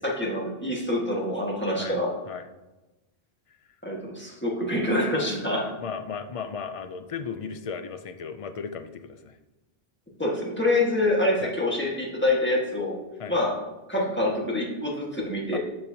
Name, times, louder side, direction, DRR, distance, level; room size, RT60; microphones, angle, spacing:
voice 1, 0.0-2.1 3.8-5.7 10.2-12.9 13.3-13.5 13.9-15.6, left 1 dB, 10° left, -4 dB, 1.4 m, -26 dB
voice 2, 5.6-9.4 11.4-11.5 13.2-13.3 15.5-15.6, left 6 dB, 50° left, 9 dB, 0.4 m, -35 dB
12.0 x 4.4 x 2.7 m, 1.1 s
omnidirectional pair, 1.0 m